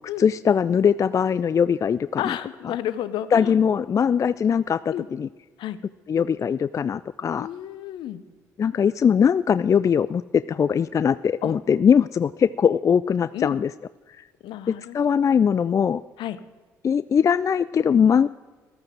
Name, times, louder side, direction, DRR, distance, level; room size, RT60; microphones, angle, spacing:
voice 1, 0.2-2.4 3.3-5.3 6.1-7.5 8.6-13.7 14.7-16.0 16.8-18.3, left 7 dB, 35° left, 16 dB, 0.3 m, -21 dB
voice 2, 2.2-3.6 4.9-5.1 5.6-5.8 7.4-8.2 11.4-11.6 13.3-13.6 14.4-15.0 15.3-15.5 16.2-16.4, left 12 dB, 65° left, 15 dB, 0.8 m, -31 dB
14.5 x 13.0 x 4.5 m, 1.4 s
hypercardioid pair, 45°, 9 cm